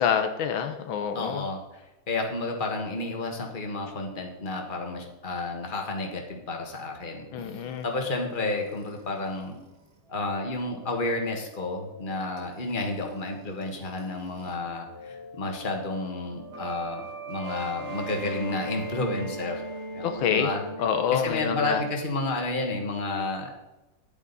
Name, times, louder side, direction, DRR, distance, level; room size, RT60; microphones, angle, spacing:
voice 1, 0.0-1.5 7.3-7.9 20.0-20.5 20.8-21.8, left 8 dB, 85° left, 7 dB, 1.7 m, -27 dB
voice 2, 1.1-1.8 2.1-7.3 7.5-9.5 10.1-19.6 19.9-20.6 21.1-23.5, left 2 dB, 25° left, 2 dB, 1.6 m, -31 dB
sound 1, 7.4-14.6 14.8-21.3, right 1 dB, 55° right, 2.4 m, -41 dB
11.0 x 8.8 x 4.1 m, 1.0 s
omnidirectional pair, 2.1 m